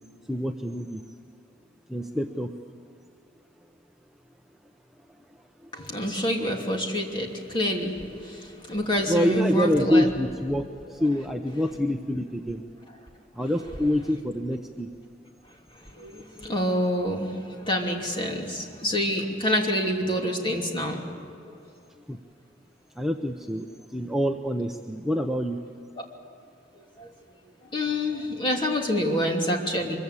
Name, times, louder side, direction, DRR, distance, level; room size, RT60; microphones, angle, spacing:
voice 1, 0.3-1.0 1.9-2.5 5.6-5.7 9.1-12.6 13.3-14.9 22.1-22.2 23.0-25.6, equal, ahead, 3 dB, 0.8 m, -26 dB
voice 2, 5.7-10.1 15.8-21.0 27.0-27.1 27.7-30.0, equal, 25° left, 1 dB, 3.0 m, -27 dB
24.5 x 23.0 x 8.3 m, 2.6 s
head